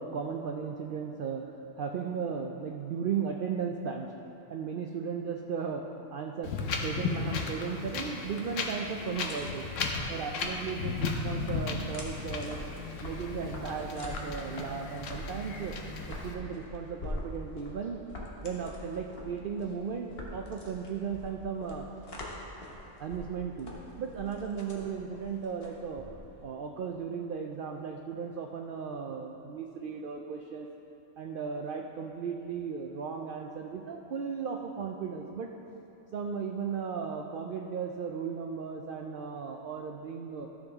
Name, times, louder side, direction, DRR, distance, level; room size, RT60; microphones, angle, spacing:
voice 1, 0.0-1.5 1.8-4.1 4.5-6.6 6.8-9.7 10.1-12.6 13.0-15.8 16.1-18.0 18.4-21.9 23.0-23.7 24.0-26.1 26.4-30.7 31.2-35.5 36.1-40.5, right 6 dB, 75° right, 3 dB, 0.5 m, -36 dB
Wind, 6.4-16.3, left 4 dB, 70° left, 1.1 m, -35 dB
sound 1, 9.3-26.5, left 1 dB, 45° left, 1.3 m, -44 dB
12.5 x 7.0 x 3.5 m, 3.0 s
omnidirectional pair, 1.4 m